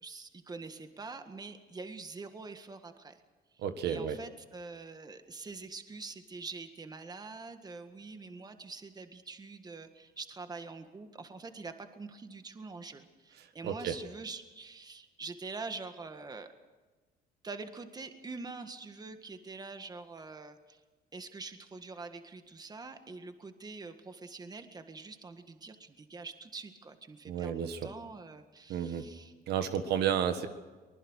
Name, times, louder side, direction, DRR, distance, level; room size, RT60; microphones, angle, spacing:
voice 1, 0.0-3.2 3.5-16.5 17.4-20.8 21.1-29.3, right 4 dB, 25° right, 8 dB, 1.8 m, -45 dB
voice 2, 3.6-4.2 13.6-14.0 27.2-27.9 28.7-29.1 29.5-30.5, right 8 dB, 75° right, 8 dB, 1.7 m, -31 dB
24.5 x 20.0 x 6.5 m, 1.3 s
cardioid pair, 110°, 17 cm